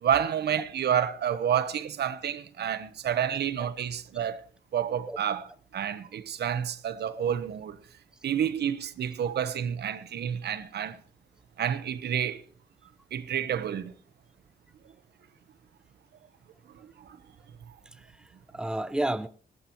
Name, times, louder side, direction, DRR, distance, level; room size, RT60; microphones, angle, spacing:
voice 1, 0.0-4.4 4.7-5.4 5.7-7.8 8.2-11.0 11.6-12.4 13.1-13.9 17.0-17.2, right 9 dB, 85° right, 1.1 m, -29 dB
voice 2, 17.9-19.3, right 1 dB, 5° right, 0.7 m, -32 dB
20.5 x 18.0 x 3.0 m
cardioid pair, 95°, 17 cm